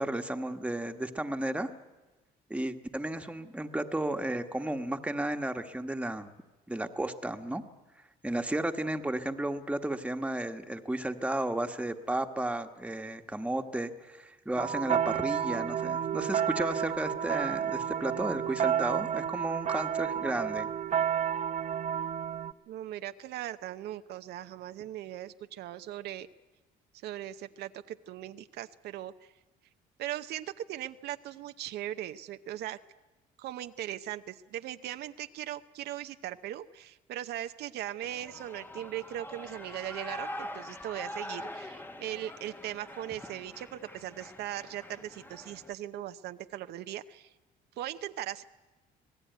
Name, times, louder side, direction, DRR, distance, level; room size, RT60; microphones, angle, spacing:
voice 1, 0.0-1.7 2.5-6.3 6.7-7.6 8.2-20.7, right 1 dB, 5° right, 6 dB, 1.4 m, -33 dB
sound 1, 14.6-22.5, right 9 dB, 45° right, 0.8 m, -31 dB
voice 2, 22.7-26.3 27.0-29.3 30.0-32.8 33.4-47.3 47.8-48.4, right 12 dB, 75° right, 9 dB, 0.8 m, -39 dB
Shout / Cheering, 38.0-45.7, left 1 dB, 10° left, 1.1 m, -44 dB
26.0 x 18.5 x 9.3 m, 1.1 s
cardioid pair, 110°, 17 cm